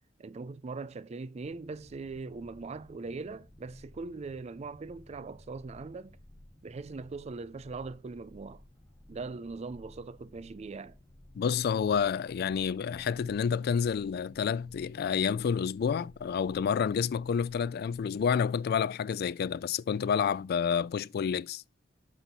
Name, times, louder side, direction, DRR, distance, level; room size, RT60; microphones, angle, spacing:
voice 1, 0.2-6.2 6.6-8.6 9.1-11.0, right 3 dB, 35° right, 0.4 m, -41 dB
sound 1, 1.4-18.6, left 1 dB, 15° left, 1.9 m, -56 dB
voice 2, 11.3-21.6, left 7 dB, 55° left, 0.3 m, -29 dB
8.2 x 4.3 x 5.3 m
head